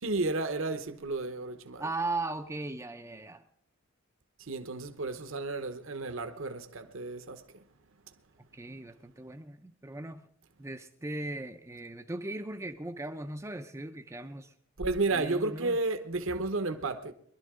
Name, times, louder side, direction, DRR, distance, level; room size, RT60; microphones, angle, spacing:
voice 1, 0.0-1.8 4.4-7.6 14.8-17.1, right 3 dB, 65° right, 1.0 m, -32 dB
voice 2, 1.8-3.4 8.5-10.2 10.6-14.5 15.1-15.8, right 2 dB, 15° right, 0.5 m, -38 dB
22.5 x 12.0 x 3.7 m
head